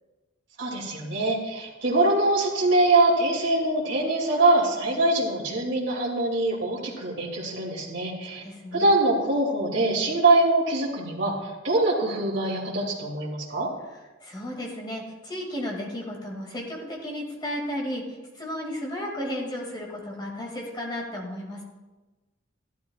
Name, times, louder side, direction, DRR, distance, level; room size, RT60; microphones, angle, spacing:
voice 1, 0.6-8.4 8.7-13.7, right 2 dB, 70° right, -4 dB, 2.5 m, -23 dB
voice 2, 8.4-8.9 14.2-18.0 18.4-21.6, left 1 dB, 25° left, -1 dB, 2.3 m, -33 dB
14.5 x 12.0 x 2.4 m, 1.2 s
head